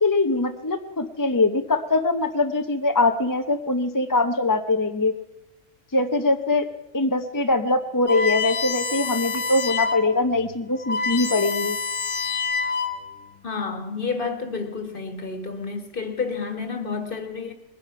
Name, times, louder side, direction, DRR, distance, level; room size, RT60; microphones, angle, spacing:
voice 1, 0.0-5.1 5.9-6.7 6.9-11.8, left 2 dB, 20° left, 0.6 m, -22 dB
sound 1, 8.1-10.1 10.5-10.6 10.8-13.2, left 4 dB, 70° left, 2.0 m, -27 dB
voice 2, 13.4-17.5, left 4 dB, 45° left, 1.8 m, -30 dB
21.0 x 10.5 x 5.8 m
omnidirectional pair, 1.3 m